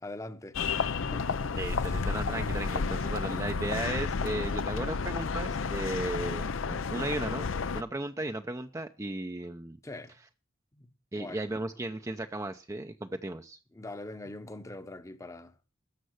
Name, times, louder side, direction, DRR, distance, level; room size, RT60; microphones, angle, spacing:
voice 1, 0.0-2.1 9.8-10.2 10.7-10.9 11.2-11.4 13.7-15.6, left 2 dB, 15° left, 0.9 m, -43 dB
sound 1, 0.5-7.8, left 5 dB, 70° left, 0.6 m, -31 dB
voice 2, 1.5-7.5 7.7-9.8 11.1-13.6, right 2 dB, 15° right, 0.6 m, -35 dB
13.0 x 6.7 x 7.9 m
head